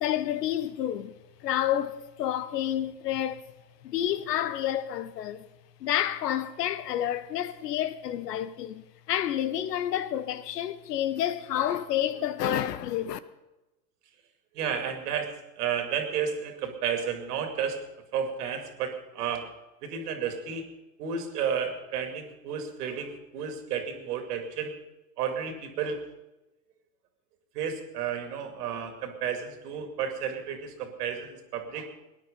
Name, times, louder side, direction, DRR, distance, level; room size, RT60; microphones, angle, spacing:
voice 1, 0.0-1.1 1.4-3.4 3.8-5.4 5.8-13.2, left 11 dB, 75° left, 1.0 m, -29 dB
voice 2, 14.5-17.8 18.1-19.5 19.8-20.6 21.0-24.7 25.2-26.0 27.5-31.9, right 7 dB, 65° right, 2.6 m, -32 dB
18.0 x 10.5 x 5.3 m
hypercardioid pair, 105°, 49 cm